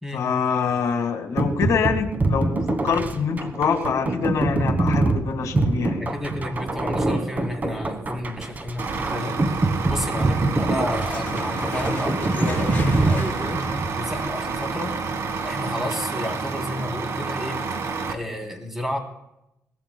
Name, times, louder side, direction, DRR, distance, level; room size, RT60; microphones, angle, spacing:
voice 1, 0.1-6.1, left 6 dB, 75° left, 5 dB, 1.8 m, -25 dB
sound 1, 1.4-13.9, right 2 dB, 30° right, 1.3 m, -25 dB
voice 2, 6.0-9.4 9.8-13.6 13.9-14.9 15.4-17.6 18.1-19.0, left 1 dB, 5° right, 2 dB, 3.2 m, -31 dB
Truck, 8.8-18.1, right 4 dB, 55° right, 1.6 m, -29 dB
sound 2, 10.9-15.0, left 3 dB, 30° left, 5.6 m, -35 dB
22.0 x 18.5 x 2.2 m, 0.85 s
cardioid pair, 130°, 6 cm